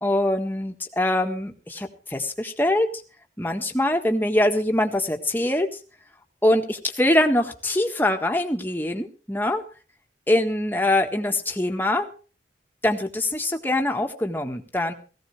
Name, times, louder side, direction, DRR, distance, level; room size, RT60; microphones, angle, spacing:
voice 1, 0.0-2.9 3.4-5.7 6.4-9.6 10.3-12.1 12.8-14.9, left 1 dB, 10° left, 4 dB, 1.6 m, -23 dB
18.0 x 15.5 x 3.3 m, 0.35 s
head